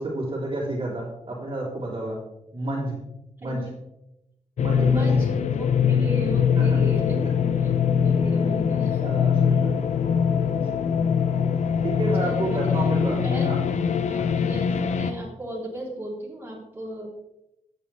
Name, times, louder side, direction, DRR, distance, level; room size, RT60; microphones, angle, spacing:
voice 1, 0.0-2.2 2.5-3.0 3.4-3.6 4.6-5.2 6.5-6.8 8.4-8.7 9.0-9.7 10.7-11.0 11.8-13.6 14.1-14.3, right 1 dB, 45° right, -3 dB, 3.6 m, -30 dB
sound 1, 4.6-15.1, left 7 dB, 75° left, 0.7 m, -22 dB
voice 2, 4.8-7.2 7.6-9.0 9.5-9.6 10.4-10.7 12.2-13.5 14.1-17.1, equal, 15° right, -5 dB, 3.7 m, -36 dB
14.5 x 8.8 x 3.4 m, 0.89 s
wide cardioid pair, 110°, 12 cm